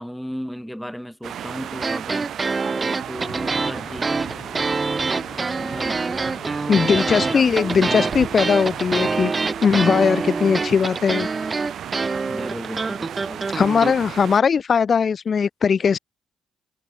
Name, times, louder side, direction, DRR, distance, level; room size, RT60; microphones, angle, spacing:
voice 1, 0.0-2.3 2.8-4.1 5.5-6.0 6.7-7.9 9.7-10.1 12.3-13.5, equal, ahead, 1.9 m, -34 dB
sound 1, 1.2-14.4, right 9 dB, 65° right, 2.8 m, -34 dB
sound 2, 1.8-13.9, right 4 dB, 30° right, 1.0 m, -25 dB
sound 3, 3.2-9.2, left 4 dB, 30° left, 4.9 m, -41 dB
voice 2, 6.7-9.3 9.6-11.3 13.5-16.0, left 6 dB, 45° left, 0.5 m, -19 dB
cardioid pair, 90°, 0 cm